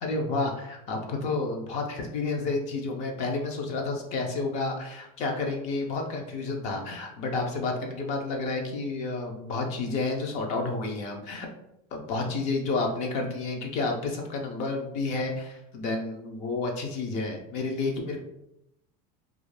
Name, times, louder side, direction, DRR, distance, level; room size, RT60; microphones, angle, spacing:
voice 1, 0.0-11.5 11.9-18.2, left 3 dB, 40° left, 2 dB, 0.4 m, -30 dB
2.3 x 2.1 x 3.1 m, 0.80 s
cardioid pair, 170°, 19 cm